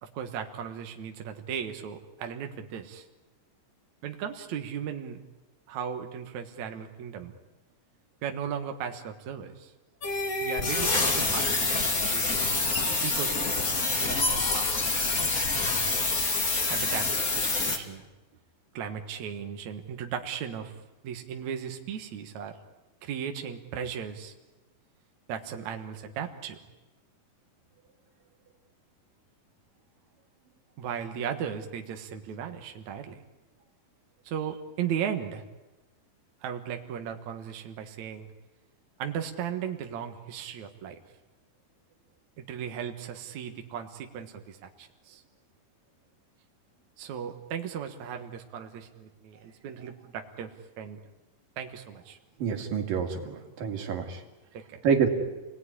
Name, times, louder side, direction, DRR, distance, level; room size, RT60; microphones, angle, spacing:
voice 1, 0.0-3.1 4.0-5.2 5.7-7.3 8.2-9.7 10.4-12.5 13.0-15.1 16.7-18.0 18.7-20.7 21.0-22.5 23.0-24.3 25.3-26.6 30.8-33.1 34.2-35.4 36.4-38.3 39.0-41.0 42.4-45.2 47.0-51.0 51.6-52.2 54.5-54.8, right 8 dB, 60° right, 4 dB, 2.6 m, -36 dB
sound 1, 10.0-17.8, left 3 dB, 30° left, 2.4 m, -27 dB
voice 2, 52.4-54.2 54.8-55.1, right 6 dB, 80° right, 4 dB, 4.0 m, -27 dB
29.0 x 19.5 x 9.9 m, 1.1 s
omnidirectional pair, 3.9 m